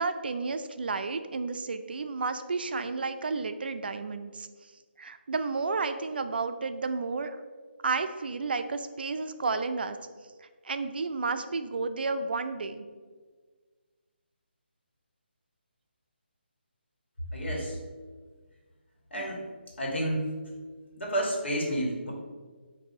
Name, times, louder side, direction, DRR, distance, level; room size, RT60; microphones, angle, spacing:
voice 1, 0.0-4.5 5.0-7.4 7.8-10.0 10.6-12.8, right 4 dB, 60° right, 9 dB, 0.3 m, -31 dB
voice 2, 17.3-17.8 19.1-19.4 19.8-20.3 21.0-22.1, right 1 dB, 80° left, -2 dB, 1.5 m, -30 dB
4.6 x 2.6 x 4.0 m, 1.5 s
hypercardioid pair, 170°, 6 cm